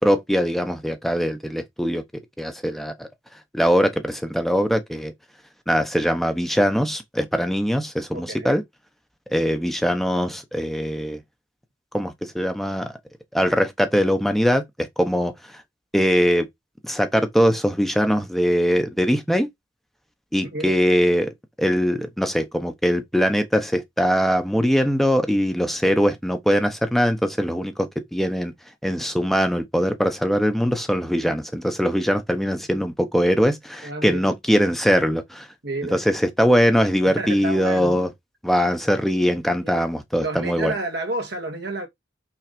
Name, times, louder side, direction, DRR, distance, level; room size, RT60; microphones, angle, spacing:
voice 1, 0.0-2.0 2.4-3.1 3.5-5.1 5.7-8.6 9.3-11.2 11.9-12.9 13.3-15.6 15.9-16.5 16.8-19.5 20.3-28.5 28.8-35.5 35.9-38.1 38.4-40.7, equal, ahead, 0.9 m, -21 dB
voice 2, 8.1-8.6 20.5-20.7 33.8-34.3 35.6-36.0 37.2-38.1 39.6-39.8 40.2-41.9, right 2 dB, 65° right, 1.8 m, -30 dB
6.0 x 4.0 x 5.2 m
head